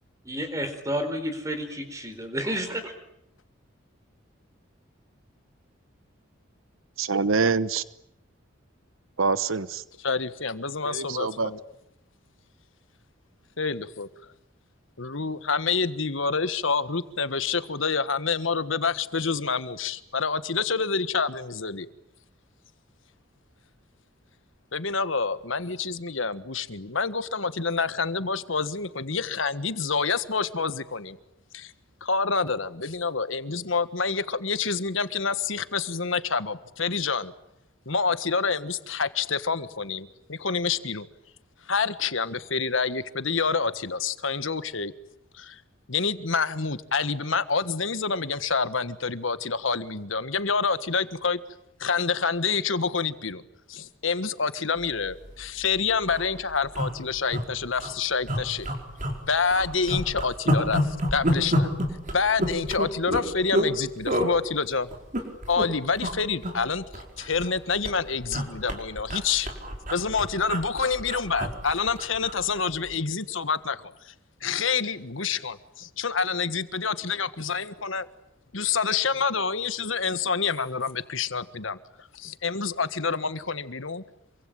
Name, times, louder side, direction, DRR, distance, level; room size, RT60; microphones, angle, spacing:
voice 1, 0.3-2.9, equal, 15° right, 4.2 m, -30 dB
voice 2, 7.0-7.8 9.2-9.8 10.8-11.5, right 4 dB, 85° right, 1.0 m, -25 dB
voice 3, 10.0-11.6 13.6-14.1 15.0-21.9 24.7-31.2 31.5-31.7 32.0-37.3 37.8-41.1 41.7-44.9 45.3-45.6 45.9-51.4 51.8-53.4 53.7-58.7 59.3-61.7 62.1-64.9 65.5-69.5 69.9-73.7 74.4-78.0 78.5-84.0, left 5 dB, 75° left, 1.5 m, -27 dB
sound 1, 55.3-55.5 55.7-55.8 56.0-56.3 56.7-57.4 57.8-57.9 58.3-59.2 59.5-63.7 64.1-64.3 64.9-65.7 66.0-66.2 66.4-67.6 67.8-72.4 72.7-72.9, equal, 40° right, 4.9 m, -28 dB
27.0 x 24.0 x 8.9 m
head